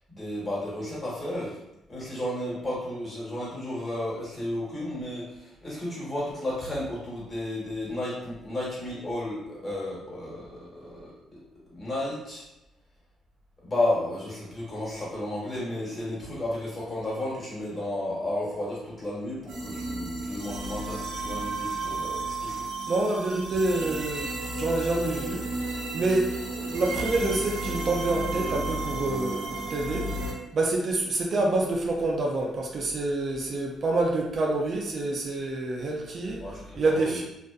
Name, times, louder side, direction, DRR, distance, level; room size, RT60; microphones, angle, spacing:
voice 1, 0.1-1.6 1.9-11.1 11.7-12.4 13.6-22.7 36.4-37.2, left 1 dB, 25° left, -7 dB, 1.3 m, -33 dB
sound 1, 19.5-30.3, right 2 dB, 85° right, 0.6 m, -33 dB
voice 2, 22.9-25.5 25.9-26.3 26.6-30.2 30.5-36.5 36.8-37.2, right 2 dB, 50° right, 0 dB, 0.4 m, -27 dB
2.4 x 2.4 x 2.3 m, 0.89 s
cardioid pair, 90°, 0 cm